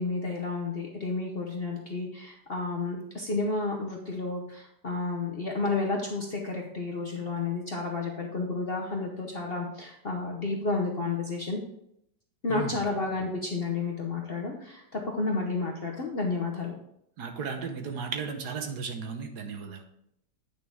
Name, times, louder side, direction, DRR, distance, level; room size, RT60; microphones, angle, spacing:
voice 1, 0.0-11.6 12.4-16.7, left 3 dB, 45° left, 0 dB, 0.9 m, -31 dB
voice 2, 12.5-12.8 17.2-19.8, right 5 dB, 65° right, 5 dB, 1.5 m, -35 dB
9.4 x 6.3 x 3.6 m, 0.76 s
omnidirectional pair, 1.9 m